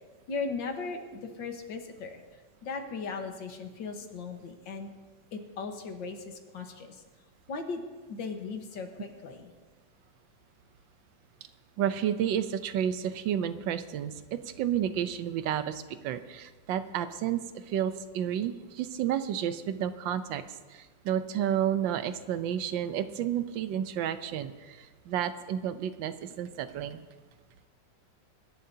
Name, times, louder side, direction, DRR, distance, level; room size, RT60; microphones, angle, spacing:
voice 1, 0.3-4.9 5.3-7.0 7.5-7.8 8.1-9.5, left 4 dB, 85° left, 5 dB, 2.0 m, -38 dB
voice 2, 11.8-20.4 20.7-27.0, right 10 dB, 85° right, 11 dB, 1.4 m, -31 dB
23.5 x 11.5 x 2.8 m, 1.4 s
omnidirectional pair, 2.0 m